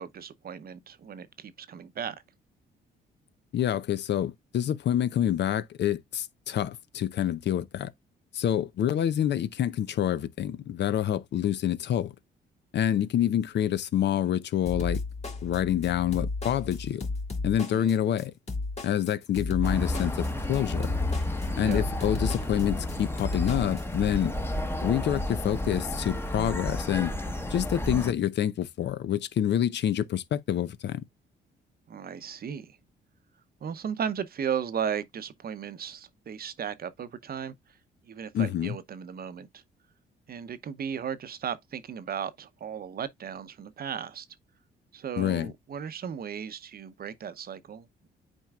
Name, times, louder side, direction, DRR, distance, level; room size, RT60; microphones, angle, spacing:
voice 1, 0.0-2.2 17.6-18.0 21.6-21.9 31.9-32.8 33.6-37.5 38.1-39.6 40.3-44.3 44.9-48.1, right 8 dB, 50° right, 0.8 m, -36 dB
voice 2, 3.5-7.9 8.3-12.1 12.7-15.0 15.4-17.1 17.4-18.3 18.8-20.9 21.6-24.3 24.8-27.1 27.5-31.0 38.3-38.8 45.2-45.5, left 10 dB, 60° left, 0.6 m, -27 dB
sound 1, 14.7-23.8, left 3 dB, 35° left, 2.1 m, -34 dB
sound 2, 19.6-28.1, left 1 dB, 10° left, 1.0 m, -31 dB
8.9 x 4.5 x 2.3 m
cardioid pair, 90°, 20 cm